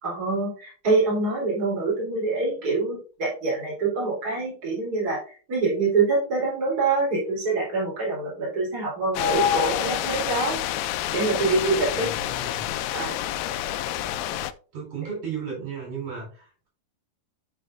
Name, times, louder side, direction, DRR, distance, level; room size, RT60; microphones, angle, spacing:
voice 1, 0.0-10.6 11.1-12.1 12.9-13.2, right 3 dB, 25° right, -5 dB, 4.0 m, -25 dB
sound 1, 9.2-14.5, left 11 dB, 90° left, 2.3 m, -27 dB
voice 2, 11.9-12.6 14.7-16.7, right 6 dB, 60° right, -2 dB, 5.4 m, -35 dB
11.5 x 5.7 x 2.6 m, 0.38 s
omnidirectional pair, 3.9 m